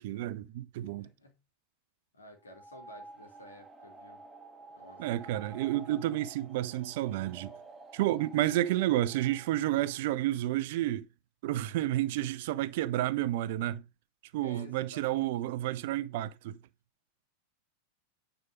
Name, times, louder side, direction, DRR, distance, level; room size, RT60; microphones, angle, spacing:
voice 1, 0.0-1.1 5.0-7.5 7.9-11.1 11.4-13.8 14.3-16.6, right 14 dB, 50° right, 0.6 m, -30 dB
voice 2, 0.8-1.4 2.1-4.2 4.7-5.1 14.4-15.4, left 1 dB, 75° left, 3.0 m, -52 dB
sound 1, 2.4-10.1, right 3 dB, 15° right, 1.7 m, -51 dB
9.6 x 5.0 x 5.3 m
figure-of-eight pair, 90°, 0 cm